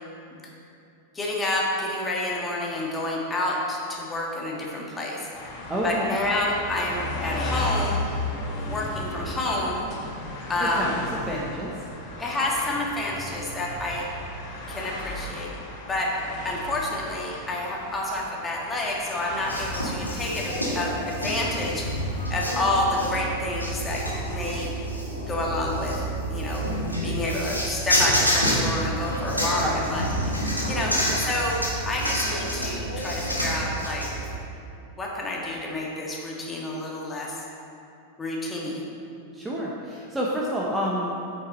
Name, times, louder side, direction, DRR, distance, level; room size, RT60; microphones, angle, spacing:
voice 1, 1.1-5.3 5.8-8.1 8.6-9.9 10.5-11.0 12.2-14.0 14.7-15.5 15.9-16.1 16.4-22.0 22.3-24.7 25.3-26.0 26.3-26.6 27.0-29.6 29.9-30.3 30.7-31.6 31.8-34.1 35.0-37.4 38.2-38.9, left 2 dB, 15° left, -3 dB, 1.6 m, -29 dB
sound 1, 5.3-22.3, left 2 dB, 40° left, 1.6 m, -35 dB
voice 2, 5.7-6.1 10.8-10.9 11.3-11.7 29.6-29.7 31.1-31.2 39.3-41.1, equal, 10° right, -4 dB, 0.9 m, -28 dB
sound 2, 19.5-34.3, equal, 90° left, 1.4 m, -28 dB
8.6 x 6.0 x 4.2 m, 2.7 s
figure-of-eight pair, 90°, 0 cm